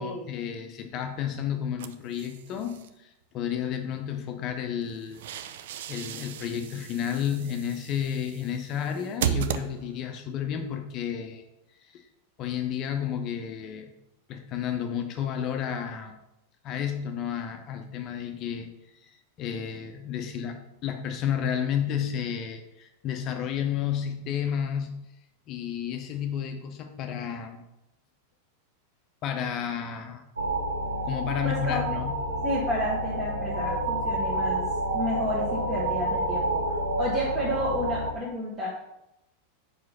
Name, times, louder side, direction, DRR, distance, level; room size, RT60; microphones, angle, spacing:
voice 1, 0.0-5.2 5.9-11.4 11.8-12.0 12.4-13.9 14.3-16.2 16.6-18.7 18.9-25.1 25.5-27.6 29.2-30.2 31.0-32.2, left 8 dB, 35° left, 6 dB, 0.6 m, -31 dB
sound 1, 1.8-2.9 4.8-10.2, right 10 dB, 55° right, 0.4 m, -35 dB
sound 2, 30.4-38.1, right 1 dB, 75° right, 0.8 m, -29 dB
voice 2, 31.4-31.8 32.4-34.7 34.9-38.7, equal, 25° right, -4 dB, 1.5 m, -31 dB
4.9 x 4.7 x 5.5 m, 0.87 s
figure-of-eight pair, 90°, 0 cm